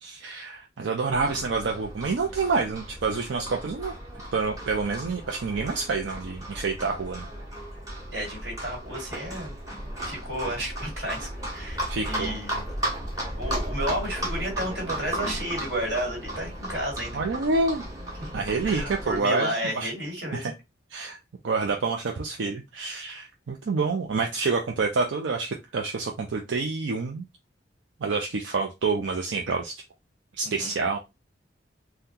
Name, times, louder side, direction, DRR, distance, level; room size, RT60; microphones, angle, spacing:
voice 1, 0.0-3.9 4.3-7.3 11.9-12.4 17.1-17.8 18.3-19.9 20.3-20.5 20.9-21.2 21.4-27.3 28.0-29.8 30.4-31.0, right 4 dB, 85° right, 1 dB, 0.5 m, -28 dB
Livestock farm animals working animals, 1.1-19.2, right 1 dB, 20° right, 1.1 m, -35 dB
voice 2, 8.1-9.5 10.0-12.7 13.3-17.2 18.2-20.5 30.4-30.7, right 1 dB, 60° right, 0 dB, 1.7 m, -32 dB
3.6 x 2.2 x 2.7 m, 0.23 s
head